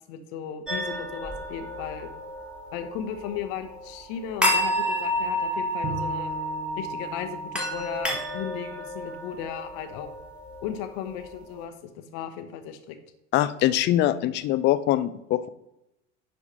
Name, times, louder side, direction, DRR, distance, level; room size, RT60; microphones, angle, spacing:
voice 1, 0.1-2.1 2.7-6.3 6.8-10.1 10.6-13.0, left 9 dB, 50° left, 7 dB, 0.9 m, -36 dB
sound 1, 0.7-11.6, equal, 5° right, 1.5 m, -31 dB
Bowed string instrument, 5.8-9.1, right 1 dB, 35° right, 1.0 m, -40 dB
voice 2, 13.3-15.5, left 13 dB, 30° left, 13 dB, 0.4 m, -23 dB
10.5 x 3.5 x 4.3 m, 0.86 s
figure-of-eight pair, 70°, 36 cm